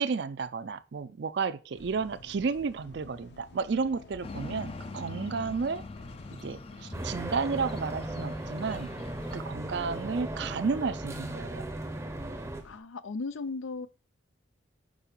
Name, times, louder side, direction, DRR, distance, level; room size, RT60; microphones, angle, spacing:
voice 1, 0.0-5.8 6.3-8.9 9.3-11.7, right 5 dB, 60° right, 0.4 m, -32 dB
sound 1, 1.8-12.8, left 2 dB, 60° left, 0.8 m, -53 dB
sound 2, 4.2-9.4, left 3 dB, 30° left, 0.4 m, -43 dB
sound 3, 6.9-12.6, right 1 dB, 15° right, 0.6 m, -37 dB
voice 2, 12.6-13.9, left 3 dB, 90° left, 0.5 m, -36 dB
5.3 x 4.7 x 4.5 m
head